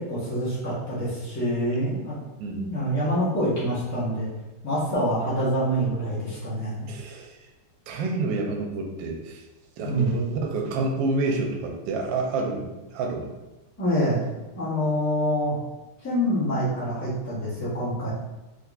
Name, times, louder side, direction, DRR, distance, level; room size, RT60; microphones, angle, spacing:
voice 1, 0.0-2.2 2.5-4.3 4.6-6.9 9.8-10.1 13.8-14.2 14.6-15.6 16.0-18.1, equal, 25° left, -10 dB, 0.3 m, -26 dB
voice 2, 6.9-7.3 7.9-9.4 9.8-13.3, right 3 dB, 75° right, 2 dB, 1.2 m, -28 dB
3.7 x 2.9 x 2.3 m, 1.1 s
omnidirectional pair, 2.2 m